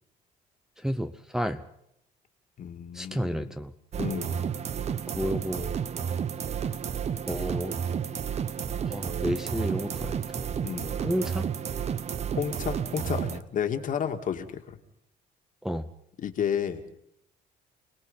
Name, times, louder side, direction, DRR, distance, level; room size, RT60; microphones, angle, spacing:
voice 1, 0.8-1.6 2.9-3.7 5.2-5.7 7.3-7.8 8.9-10.1 11.0-11.5 15.6-15.9, equal, 5° right, 6 dB, 0.9 m, -31 dB
voice 2, 2.6-3.5 4.0-4.5 10.6-11.0 12.4-14.8 16.2-16.8, left 8 dB, 50° left, 6 dB, 2.2 m, -31 dB
sound 1, 3.9-13.4, right 7 dB, 40° right, 0.9 m, -31 dB
29.0 x 19.0 x 5.6 m, 0.76 s
cardioid pair, 110°, 17 cm